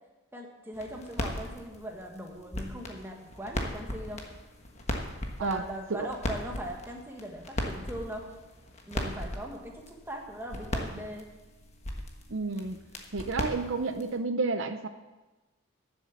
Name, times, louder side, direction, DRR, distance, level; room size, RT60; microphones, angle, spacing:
voice 1, 0.3-4.2 5.4-8.3 8.9-11.3, right 1 dB, 10° right, 1 dB, 1.4 m, -40 dB
sound 1, 0.7-14.2, left 1 dB, 30° left, 1.3 m, -38 dB
voice 2, 12.3-12.8 13.1-14.9, right 3 dB, 70° right, 9 dB, 0.6 m, -30 dB
11.5 x 7.1 x 7.2 m, 1.1 s
head